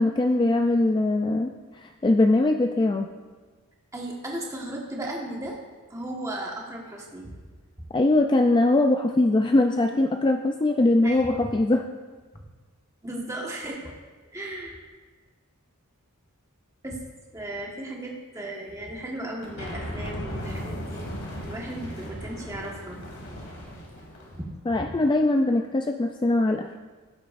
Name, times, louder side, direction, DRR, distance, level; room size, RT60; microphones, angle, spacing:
voice 1, 0.0-1.5 1.8-3.1 7.9-11.9 24.7-26.8, left 2 dB, 20° left, 5 dB, 0.3 m, -21 dB
voice 2, 3.9-5.6 5.9-7.3 11.0-11.3 13.0-13.9 14.3-14.8 16.8-17.0 17.3-21.1 21.4-23.0 24.3-24.9, right 1 dB, 15° right, -1 dB, 1.4 m, -35 dB
sound 1, 19.4-24.4, equal, 65° left, 2.5 m, -37 dB
16.0 x 8.0 x 2.5 m, 1.4 s
head